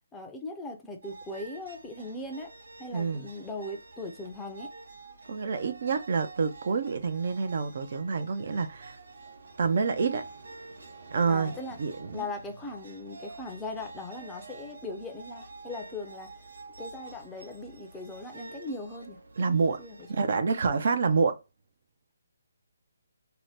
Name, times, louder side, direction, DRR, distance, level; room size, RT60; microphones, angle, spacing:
voice 1, 0.1-2.5 2.8-4.7 11.3-11.8 12.1-16.3 16.8-20.3, left 2 dB, 10° left, 0.5 m, -39 dB
sound 1, 1.0-20.4, right 3 dB, 75° right, 0.8 m, -48 dB
voice 2, 2.9-3.3 5.3-9.0 9.6-10.2 11.1-11.5 11.8-12.2 19.4-19.8 20.1-21.4, right 5 dB, 55° right, 0.4 m, -27 dB
2.7 x 2.0 x 3.2 m
hypercardioid pair, 155°, 0 cm